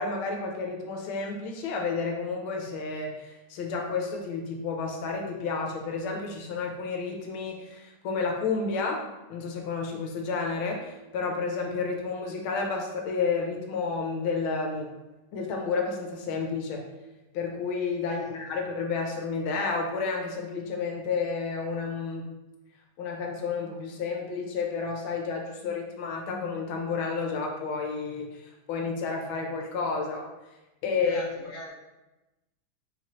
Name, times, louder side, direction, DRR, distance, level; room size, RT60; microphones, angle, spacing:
voice 1, 0.0-9.0 9.3-14.9 15.3-16.8 17.3-22.3 23.0-30.3 30.8-31.2, left 4 dB, 80° left, 1 dB, 1.5 m, -31 dB
voice 2, 31.0-31.7, equal, 35° left, -6 dB, 0.8 m, -41 dB
4.4 x 3.1 x 2.9 m, 1.0 s
omnidirectional pair, 2.3 m